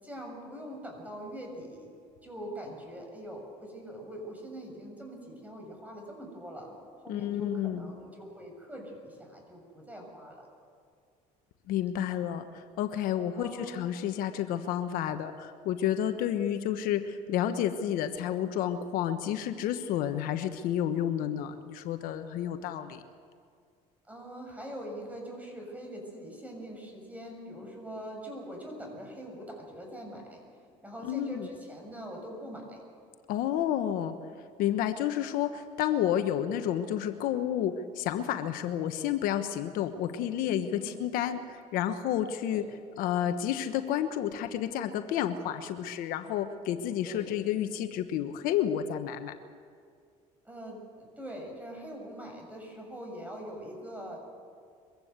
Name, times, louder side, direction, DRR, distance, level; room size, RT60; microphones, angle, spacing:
voice 1, 0.0-1.9 2.2-6.7 7.0-10.5 13.4-13.7 24.1-30.4 30.8-32.8 40.7-41.0 42.4-42.7 47.0-47.3 50.4-54.2, equal, 10° right, 1 dB, 7.2 m, -43 dB
voice 2, 7.1-7.9 11.7-23.0 31.0-31.5 33.3-42.6 43.0-49.3, left 10 dB, 75° left, 8 dB, 1.2 m, -30 dB
23.0 x 15.5 x 8.1 m, 2.2 s
supercardioid pair, 95°, 15 cm